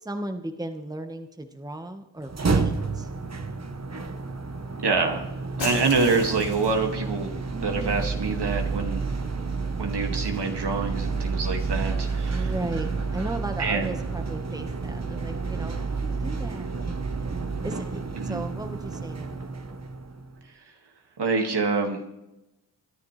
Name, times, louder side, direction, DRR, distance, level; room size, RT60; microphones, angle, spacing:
voice 1, 0.0-3.1 12.3-17.1 17.6-19.5, right 1 dB, 10° right, 6 dB, 1.4 m, -36 dB
sound 1, 2.2-20.3, right 4 dB, 35° right, 1.4 m, -30 dB
voice 2, 4.8-5.3 5.6-7.3 7.6-9.1 9.8-12.5 13.6-13.9 18.2-18.4 21.2-22.0, right 4 dB, 60° right, 3 dB, 2.2 m, -26 dB
Shatter, 5.6-6.9, left 3 dB, 75° left, 6.5 m, -35 dB
22.5 x 10.5 x 3.3 m, 0.93 s
supercardioid pair, 40°, 45 cm